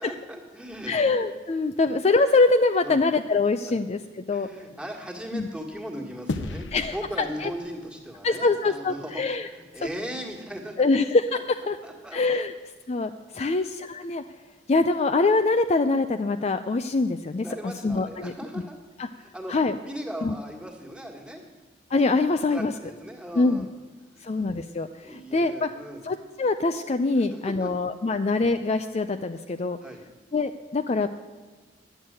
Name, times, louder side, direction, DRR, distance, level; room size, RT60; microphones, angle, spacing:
voice 1, 0.0-1.0 1.8-1.9 2.8-3.0 3.7-3.8 4.3-11.0 11.3-11.4 11.8-12.5 17.4-18.8 19.2-19.5 19.8-21.4 22.3-23.7 24.1-24.3 25.0-26.1 27.2-27.7 28.1-28.2 29.8-30.0, equal, 5° right, -1 dB, 1.8 m, -38 dB
voice 2, 0.9-4.5 5.3-5.5 6.7-7.5 8.2-9.5 10.8-11.8 12.1-12.5 12.9-14.2 14.7-18.3 19.0-19.1 19.5-19.7 20.2-20.3 21.9-22.7 23.4-23.7 24.2-25.7 26.0-29.8 30.3-31.1, left 3 dB, 35° left, 8 dB, 0.4 m, -24 dB
sound 1, 6.3-8.9, left 2 dB, 75° left, 0.7 m, -36 dB
11.0 x 8.0 x 8.8 m, 1.3 s
head